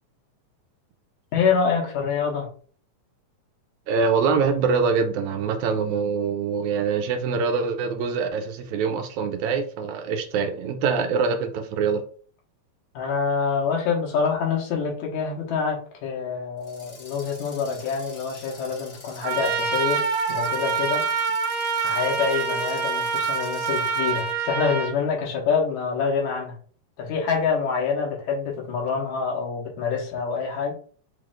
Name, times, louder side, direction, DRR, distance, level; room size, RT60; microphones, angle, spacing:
voice 1, 1.3-2.5 12.9-20.0 20.3-21.0 21.8-26.5 27.0-30.7, left 5 dB, 80° left, 2.5 m, -26 dB
voice 2, 3.9-12.0, right 5 dB, 80° right, 2.0 m, -24 dB
sound 1, 16.6-24.4, left 2 dB, 15° left, 1.4 m, -46 dB
Trumpet, 19.2-24.9, right 5 dB, 65° right, 2.0 m, -26 dB
5.9 x 3.2 x 2.5 m
omnidirectional pair, 3.4 m